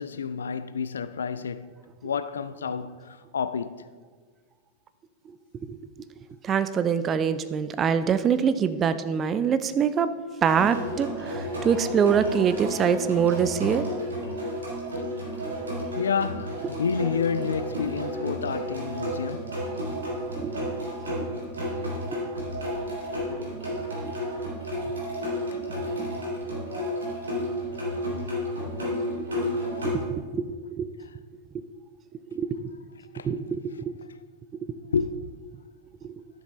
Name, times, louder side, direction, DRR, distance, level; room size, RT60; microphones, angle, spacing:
voice 1, 0.0-1.7 2.0-3.9 16.0-19.6 23.7-23.8 25.5-25.6 29.5-29.7 33.1-33.3 34.9-35.3, left 6 dB, 70° left, 0.3 m, -30 dB
voice 2, 6.4-10.1 10.4-13.9 20.4-20.5 21.1-21.3 22.1-22.3 23.3-23.5 24.0-24.1 25.5-25.6 29.8-30.9 31.5-31.6 32.3-32.7 33.2-34.0 36.0-36.2, right 7 dB, 25° right, 0.5 m, -25 dB
sound 1, 10.5-30.0, equal, 70° right, 2.4 m, -32 dB
12.0 x 7.2 x 3.1 m
figure-of-eight pair, 90°, 0 cm